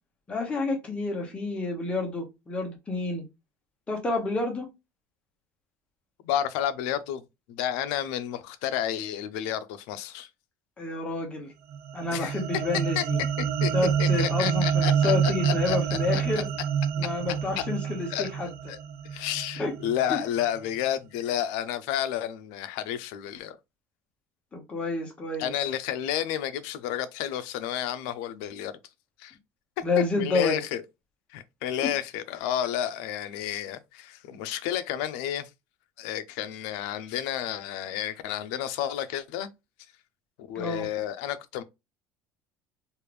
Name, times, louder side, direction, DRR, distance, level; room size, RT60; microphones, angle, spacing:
voice 1, 0.3-3.2 3.9-4.7 10.8-11.5 11.9-13.2 13.7-16.5 17.0-18.5 19.6-19.7 20.1-20.2 24.5-25.5 29.8-30.6 31.8-31.9 40.5-40.9, left 3 dB, 15° left, 0.8 m, -29 dB
voice 2, 6.2-7.2 7.5-10.3 12.1-12.4 13.0-13.1 13.6-13.7 14.0-16.2 17.6-17.7 18.1-18.3 18.7-18.8 19.1-23.6 25.4-28.7 29.2-29.4 29.8-30.8 31.3-35.5 36.0-39.5 40.5-41.6, left 11 dB, 75° left, 0.5 m, -31 dB
sound 1, 11.7-20.2, right 7 dB, 35° right, 0.4 m, -28 dB
3.2 x 2.5 x 3.2 m
cardioid pair, 170°, 7 cm